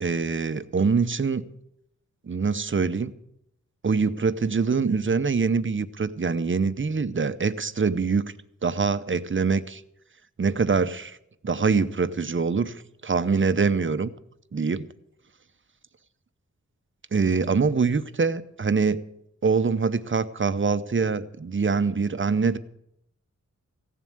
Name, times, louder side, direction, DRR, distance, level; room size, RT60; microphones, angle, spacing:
voice 1, 0.0-1.5 2.3-3.1 3.8-8.3 8.6-9.8 10.4-11.2 11.4-12.7 13.0-14.1 14.5-14.9 17.1-19.0 19.4-22.6, right 5 dB, 40° right, 12 dB, 0.8 m, -24 dB
16.0 x 7.3 x 8.6 m, 0.78 s
wide cardioid pair, 75°, 30 cm